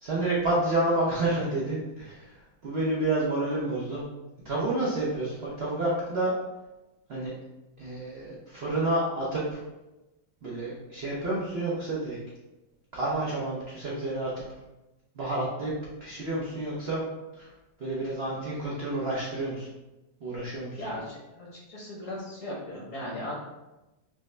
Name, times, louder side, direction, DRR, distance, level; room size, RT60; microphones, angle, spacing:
voice 1, 0.0-2.3 2.6-4.0 4.4-6.3 7.1-7.3 7.8-9.6 10.4-12.2 12.9-14.3 15.2-15.7 16.0-17.0 17.4-17.5 17.8-19.7 20.2-21.0, right 2 dB, 85° right, -6 dB, 0.5 m, -29 dB
voice 2, 20.8-23.3, left 1 dB, 55° left, -4 dB, 1.0 m, -37 dB
5.0 x 2.1 x 3.2 m, 1.0 s
omnidirectional pair, 2.1 m